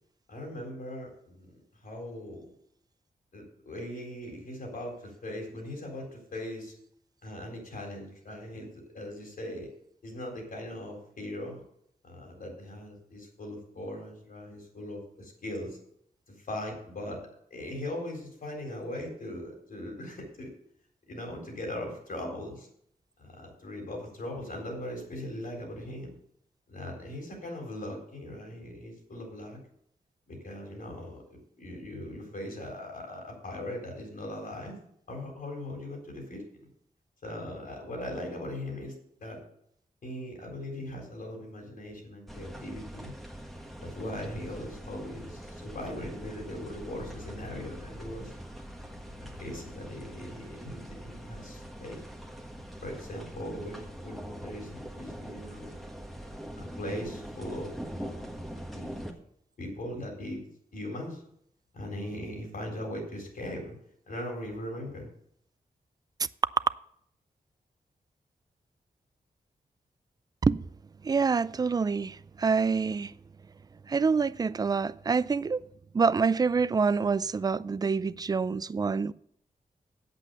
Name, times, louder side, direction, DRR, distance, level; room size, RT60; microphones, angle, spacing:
voice 1, 0.3-2.5 3.3-6.7 7.2-9.7 10.0-11.6 12.0-15.8 16.3-20.5 21.1-22.7 23.2-26.1 26.7-29.6 30.3-34.8 35.1-36.7 37.2-39.0 39.2-39.4 40.0-43.1 43.8-48.6 49.2-52.0 52.8-55.8 56.5-57.7 58.0-58.1 58.7-59.0 59.6-60.4 60.7-61.2 61.7-63.8 64.1-65.1, left 1 dB, 65° left, 4.1 m, -39 dB
sound 1, 42.3-59.1, equal, ahead, 1.5 m, -43 dB
voice 2, 71.0-73.1 73.9-75.6 75.9-79.1, right 5 dB, 25° right, 0.3 m, -26 dB
8.3 x 8.1 x 6.9 m
wide cardioid pair, 115°, 15 cm